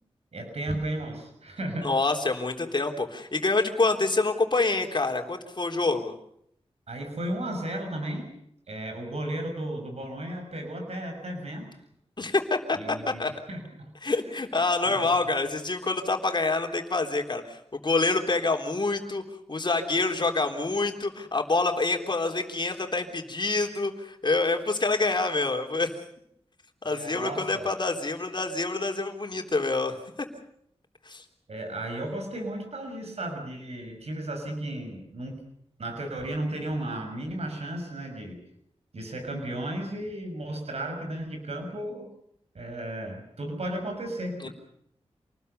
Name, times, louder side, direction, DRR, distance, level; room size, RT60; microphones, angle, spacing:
voice 1, 0.3-1.9 6.9-8.3 8.7-11.7 12.7-13.9 14.9-15.2 26.8-27.7 31.5-35.4 35.8-38.4 38.9-42.1 42.5-44.5, right 1 dB, 70° right, 4 dB, 6.4 m, -34 dB
voice 2, 1.8-6.1 12.2-13.3 14.0-19.2 19.5-25.9 26.8-30.0 31.1-31.2 44.4-44.5, left 3 dB, 45° left, 4 dB, 3.7 m, -26 dB
28.0 x 20.0 x 6.8 m, 0.73 s
wide cardioid pair, 80°, 11 cm